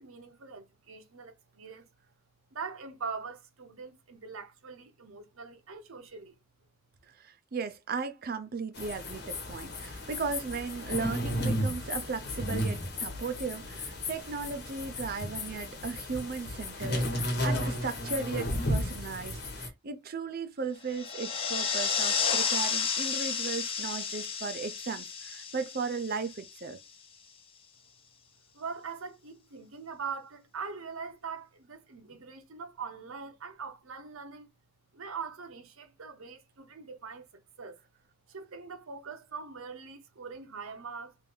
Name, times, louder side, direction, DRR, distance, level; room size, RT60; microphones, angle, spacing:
voice 1, 0.0-1.9 2.5-6.4 28.5-34.5 34.9-37.8 38.3-41.2, right 5 dB, 85° right, 0.8 m, -42 dB
voice 2, 7.2-26.8, right 4 dB, 45° right, 0.4 m, -36 dB
sound 1, 8.7-19.7, left 1 dB, 50° left, 1.2 m, -34 dB
sound 2, 20.9-26.7, left 6 dB, 25° left, 0.4 m, -32 dB
3.2 x 2.6 x 3.5 m
head